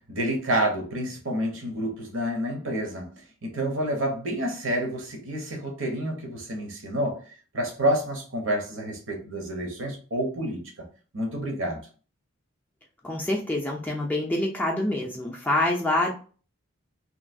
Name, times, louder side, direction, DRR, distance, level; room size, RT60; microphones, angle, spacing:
voice 1, 0.1-3.1 3.4-10.9 11.1-11.8, right 1 dB, 65° right, 3 dB, 0.9 m, -29 dB
voice 2, 13.0-16.1, left 1 dB, 10° left, -2 dB, 0.4 m, -26 dB
3.0 x 2.6 x 2.6 m, 0.37 s
head